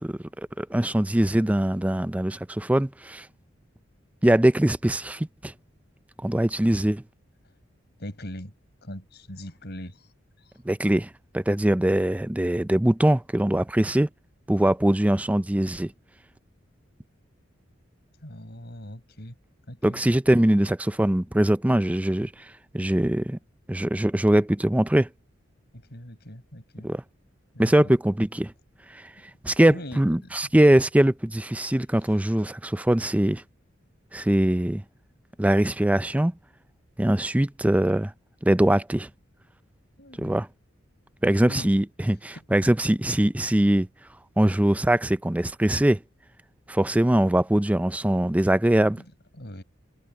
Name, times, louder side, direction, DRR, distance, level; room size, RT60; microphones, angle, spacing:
voice 1, 0.0-3.3 4.2-5.5 6.2-7.0 10.7-14.1 14.5-15.9 19.8-22.3 22.7-23.4 23.7-25.1 26.8-27.0 27.6-28.5 28.9-29.1 29.4-33.4 34.1-34.8 35.4-36.3 37.0-38.1 38.4-39.1 40.2-40.5 41.2-43.9 44.4-46.0 46.7-49.0, right 1 dB, 5° right, 0.4 m, -22 dB
voice 2, 8.0-8.5 8.8-10.1 18.2-19.3 19.7-20.0 25.9-26.9 27.5-27.9 29.7-30.0 40.0-40.3 41.5-41.7 49.4-49.6, equal, 60° left, 6.1 m, -40 dB
head